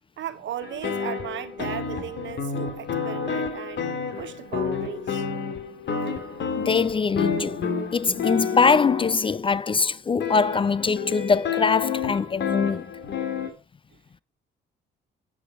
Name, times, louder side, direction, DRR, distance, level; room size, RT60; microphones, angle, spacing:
voice 1, 0.2-5.3, right 10 dB, 70° right, 1.4 m, -36 dB
sound 1, 0.6-9.4 10.2-13.5, left 6 dB, 65° left, 2.6 m, -30 dB
voice 2, 6.6-12.9, left 5 dB, 25° left, 0.4 m, -23 dB
9.2 x 8.6 x 4.7 m
cardioid pair, 90°, 20 cm